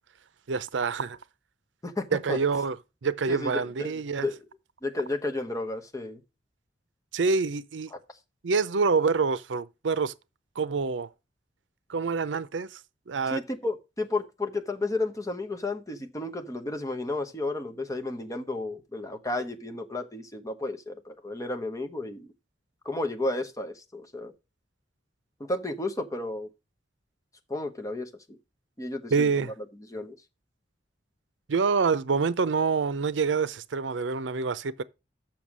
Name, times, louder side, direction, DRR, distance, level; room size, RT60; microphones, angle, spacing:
voice 1, 0.5-1.2 2.1-2.8 3.0-4.3 7.1-7.9 8.4-10.1 10.6-11.1 11.9-12.8 13.1-13.4 29.1-29.5 31.5-34.8, right 4 dB, 80° right, 0.6 m, -26 dB
voice 2, 1.8-2.4 3.3-3.9 4.2-4.4 4.8-6.2 7.9-8.0 13.3-22.3 22.8-24.3 25.4-26.5 27.5-28.4 28.8-29.3 29.9-30.1, left 2 dB, 20° left, 1.1 m, -32 dB
7.1 x 5.9 x 6.1 m
head